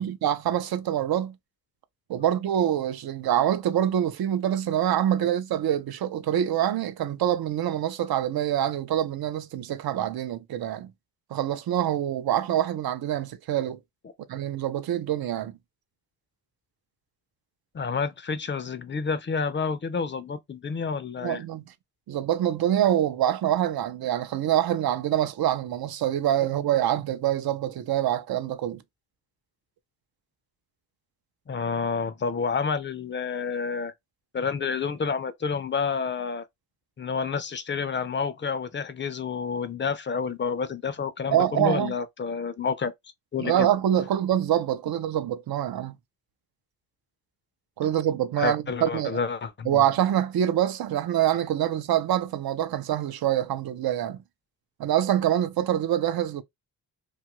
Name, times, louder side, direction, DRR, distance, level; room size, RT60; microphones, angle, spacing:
voice 1, 0.0-1.3 2.1-10.9 11.3-13.8 14.3-15.6 21.2-21.6 22.1-28.8 41.3-41.9 43.4-45.9 47.8-49.2 49.7-54.2 54.8-56.4, right 11 dB, 70° right, 0.5 m, -25 dB
voice 2, 17.7-21.4 31.5-33.9 34.3-36.4 37.0-42.9 43.3-43.7 48.4-49.8, left 5 dB, 30° left, 0.4 m, -29 dB
2.6 x 2.4 x 2.9 m
wide cardioid pair, 115°, 38 cm